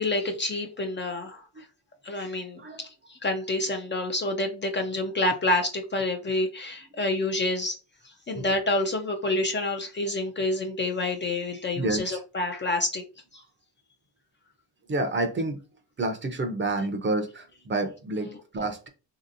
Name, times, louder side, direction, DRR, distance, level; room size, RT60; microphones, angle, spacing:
voice 1, 0.0-1.7 2.0-7.8 8.0-13.0 18.2-18.4, left 2 dB, 30° left, 0.5 m, -28 dB
voice 2, 11.8-12.2 14.9-15.6 16.0-18.9, right 2 dB, 30° right, 0.6 m, -29 dB
3.1 x 2.8 x 2.6 m
cardioid pair, 85°, 41 cm